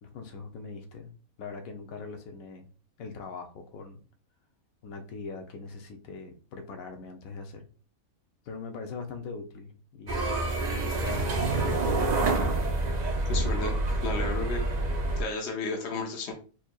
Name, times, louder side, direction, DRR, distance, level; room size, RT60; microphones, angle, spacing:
voice 1, 0.0-1.1 1.4-2.7 3.0-4.0 4.8-7.7 8.5-10.4 10.7-12.2, left 4 dB, 75° left, 5 dB, 1.1 m, -41 dB
sound 1, 10.1-15.2, right 2 dB, 55° right, 0.4 m, -27 dB
voice 2, 13.3-13.7 14.0-14.7 15.2-16.3, left 3 dB, 55° left, 1 dB, 0.9 m, -32 dB
4.6 x 2.8 x 2.2 m, 0.37 s
omnidirectional pair, 1.5 m